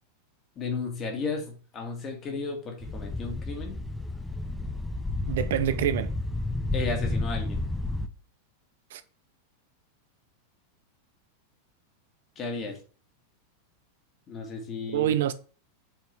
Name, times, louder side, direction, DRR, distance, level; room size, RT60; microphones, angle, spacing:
voice 1, 0.6-3.8 6.7-7.6 12.4-12.8 14.3-15.1, left 4 dB, 30° left, 1.9 m, -34 dB
sound 1, 2.8-8.1, left 2 dB, 5° left, 0.6 m, -31 dB
voice 2, 5.3-6.1 8.9-9.0 14.9-15.3, right 11 dB, 55° right, 0.5 m, -26 dB
7.3 x 4.4 x 3.4 m
figure-of-eight pair, 90°, 0 cm